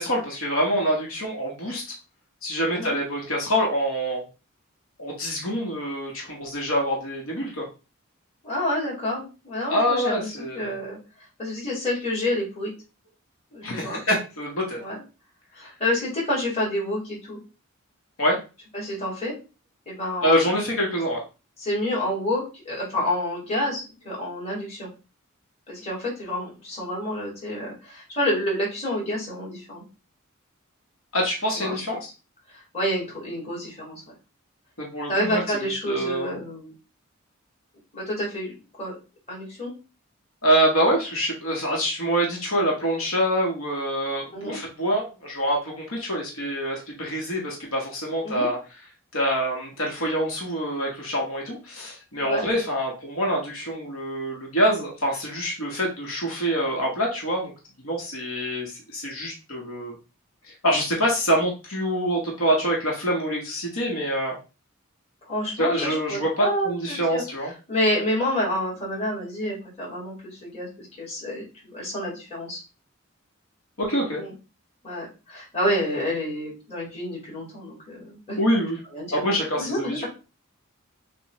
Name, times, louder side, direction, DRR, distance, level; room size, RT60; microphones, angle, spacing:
voice 1, 0.0-1.8 2.4-4.2 5.0-7.6 9.7-10.8 13.6-14.8 18.2-18.4 20.2-21.2 31.1-32.0 34.8-36.3 40.4-48.6 49.1-57.5 57.8-59.9 60.6-64.4 65.6-67.5 73.8-74.2 78.4-78.8 79.1-80.1, equal, 85° left, -1 dB, 1.4 m, -25 dB
voice 2, 8.4-11.0 11.4-12.7 13.5-14.0 14.8-15.0 15.5-17.4 18.7-19.3 19.9-20.5 21.6-24.9 25.7-29.8 31.5-32.0 32.5-34.0 35.1-36.7 37.9-38.5 38.8-39.0 39.3-39.7 44.3-44.6 48.2-48.5 52.2-52.5 65.3-67.2 67.7-72.6 74.2-74.3 74.8-78.4 78.9-80.1, left 1 dB, 30° left, -5 dB, 2.5 m, -28 dB
6.2 x 2.6 x 3.1 m, 0.31 s
head